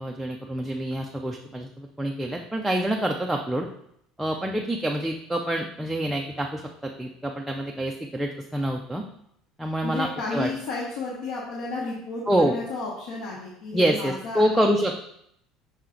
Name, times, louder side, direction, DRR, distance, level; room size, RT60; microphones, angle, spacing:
voice 1, 0.0-3.7 4.2-9.0 9.6-10.5 12.3-12.6 13.7-15.0, right 1 dB, 5° right, 1 dB, 0.3 m, -26 dB
voice 2, 9.8-14.7, left 3 dB, 60° left, -4 dB, 1.0 m, -32 dB
5.6 x 4.5 x 3.8 m, 0.73 s
cardioid pair, 175°, 0 cm